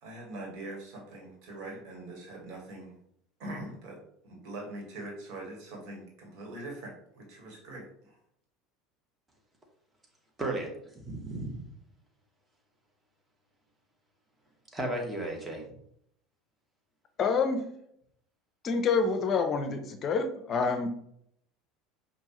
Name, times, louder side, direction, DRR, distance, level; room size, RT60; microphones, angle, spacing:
voice 1, 0.0-3.0 3.4-4.0 4.2-8.1, right 2 dB, 60° right, 0 dB, 1.5 m, -42 dB
voice 2, 10.4-11.7 14.7-15.8, right 2 dB, 20° right, 1 dB, 1.3 m, -35 dB
voice 3, 17.2-17.6 18.6-20.9, left 5 dB, 40° left, 7 dB, 0.6 m, -27 dB
5.3 x 2.5 x 3.0 m, 0.70 s
hypercardioid pair, 75°, 0 cm